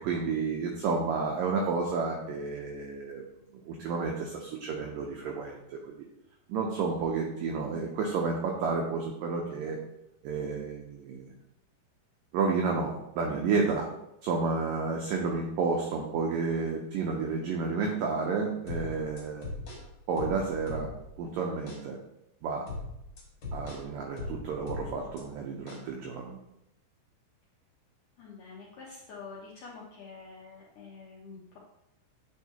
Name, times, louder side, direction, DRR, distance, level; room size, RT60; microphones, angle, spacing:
voice 1, 0.0-3.2 3.5-6.1 6.5-9.8 10.2-11.3 12.3-13.9 14.2-19.5 20.1-20.9 21.2-22.0 22.4-22.7 23.5-26.4, right 4 dB, 85° right, 0 dB, 1.9 m, -31 dB
sound 1, 18.7-21.2 21.7-21.9 22.7-25.2 25.7-25.9, left 2 dB, 50° left, 2.2 m, -39 dB
voice 2, 28.2-31.6, left 4 dB, 75° left, -5 dB, 1.9 m, -47 dB
9.1 x 4.7 x 2.9 m, 0.82 s
omnidirectional pair, 4.9 m